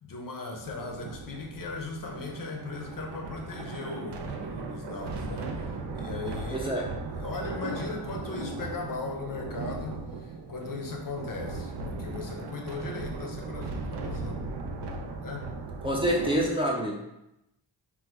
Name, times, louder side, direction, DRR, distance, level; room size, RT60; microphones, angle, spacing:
voice 1, 0.0-6.8 7.1-14.4 15.2-15.5, left 3 dB, 50° left, 2 dB, 0.6 m, -38 dB
sound 1, 0.6-16.5, right 3 dB, 65° right, 0.5 m, -37 dB
voice 2, 6.5-6.8 15.8-17.0, equal, 15° right, -2 dB, 0.4 m, -27 dB
3.0 x 2.2 x 3.3 m, 0.88 s
cardioid pair, 65°, 45 cm